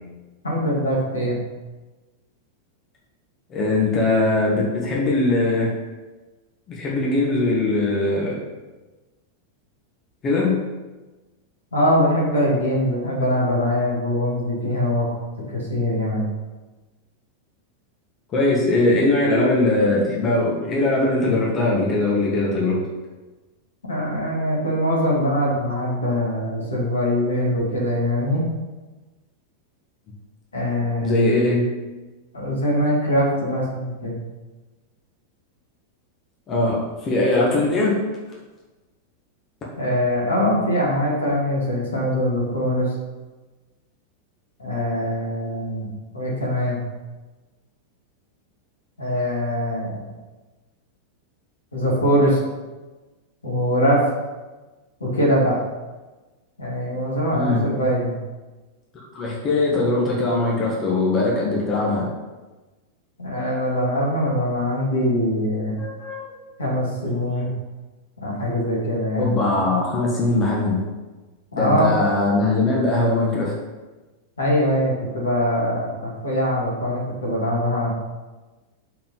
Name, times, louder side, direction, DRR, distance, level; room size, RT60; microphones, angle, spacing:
voice 1, 0.4-1.4 11.7-15.1 15.5-16.3 23.9-28.4 30.5-31.2 32.3-34.2 39.8-42.9 44.6-45.9 46.1-46.8 49.0-50.0 51.7-52.4 53.4-54.0 55.0-55.6 56.6-58.1 63.2-65.7 66.6-67.5 68.2-69.4 71.5-71.9 74.4-77.9, equal, 75° left, -5 dB, 2.4 m, -22 dB
voice 2, 3.5-5.7 6.7-8.4 10.2-10.6 18.3-22.8 31.0-31.6 36.5-38.0 57.3-57.6 59.1-62.1 65.8-66.4 67.3-67.4 69.2-70.8 71.5-73.5, left 2 dB, 30° left, -4 dB, 1.6 m, -21 dB
5.7 x 4.8 x 5.7 m, 1.2 s
figure-of-eight pair, 90°, 0 cm